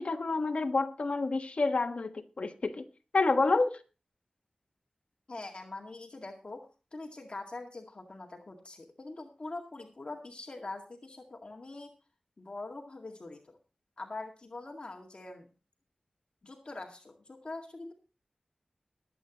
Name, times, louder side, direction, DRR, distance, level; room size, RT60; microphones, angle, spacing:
voice 1, 0.0-2.8 3.1-3.8, left 3 dB, 70° left, 1.4 m, -28 dB
voice 2, 5.3-11.9 12.4-13.6 14.0-15.5 16.4-17.9, left 2 dB, 55° left, 2.0 m, -43 dB
21.5 x 8.7 x 3.0 m
wide cardioid pair, 65°, 2 cm